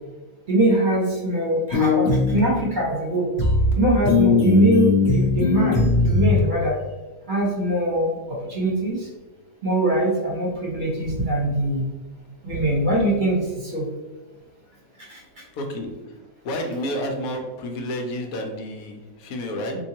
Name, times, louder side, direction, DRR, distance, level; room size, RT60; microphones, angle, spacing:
voice 1, 0.5-3.3 3.8-6.8 7.3-9.1 9.6-11.8 12.4-13.9 15.0-15.2, right 1 dB, 40° right, -5 dB, 0.9 m, -22 dB
sound 1, 1.7-2.4 3.4-3.7 4.0-6.4, left 4 dB, 55° left, 0.9 m, -19 dB
voice 2, 15.5-16.1 16.4-19.8, equal, 85° left, 3 dB, 1.1 m, -30 dB
3.7 x 2.6 x 2.8 m, 1.2 s
omnidirectional pair, 1.5 m